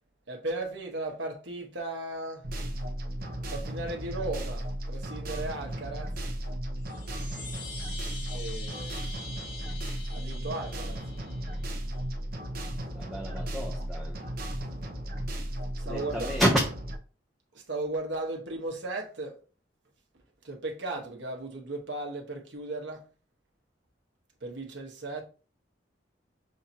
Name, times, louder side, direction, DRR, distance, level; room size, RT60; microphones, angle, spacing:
voice 1, 0.3-2.4 3.5-6.1 8.3-9.0 10.1-11.0 15.8-16.3 17.7-19.4 20.4-23.0 24.4-25.2, right 2 dB, 75° right, 1.2 m, -36 dB
sound 1, 2.4-17.0, right 1 dB, 55° right, 0.8 m, -35 dB
sound 2, 6.8-11.8, left 2 dB, 65° left, 1.6 m, -44 dB
voice 2, 12.9-14.2 15.8-16.7, equal, ahead, 0.7 m, -29 dB
6.4 x 2.9 x 2.8 m
head